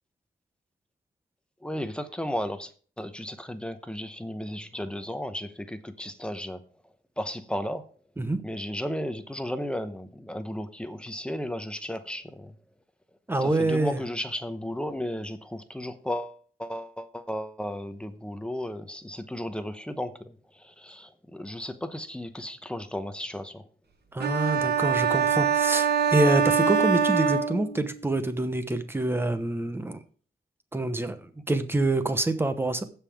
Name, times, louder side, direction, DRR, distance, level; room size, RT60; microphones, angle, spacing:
voice 1, 1.6-2.7 3.0-6.6 7.2-7.9 8.4-12.5 13.4-23.7, left 1 dB, 5° left, 8 dB, 0.8 m, -34 dB
voice 2, 13.3-14.0 24.1-30.0 30.7-32.8, right 2 dB, 15° right, 9 dB, 0.9 m, -26 dB
sound 1, 24.2-28.1, right 7 dB, 70° right, 1.3 m, -24 dB
15.5 x 5.6 x 3.5 m, 0.41 s
wide cardioid pair, 155°, 18 cm